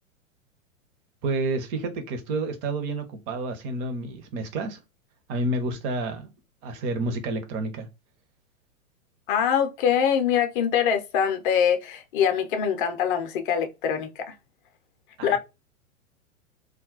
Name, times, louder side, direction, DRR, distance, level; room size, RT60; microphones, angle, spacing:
voice 1, 1.2-4.8 5.3-6.3 6.6-7.9 15.2-15.4, right 2 dB, 30° right, 0.7 m, -29 dB
voice 2, 9.3-14.3 15.2-15.4, left 8 dB, 40° left, 0.6 m, -24 dB
2.3 x 2.1 x 3.8 m
figure-of-eight pair, 105°, 42 cm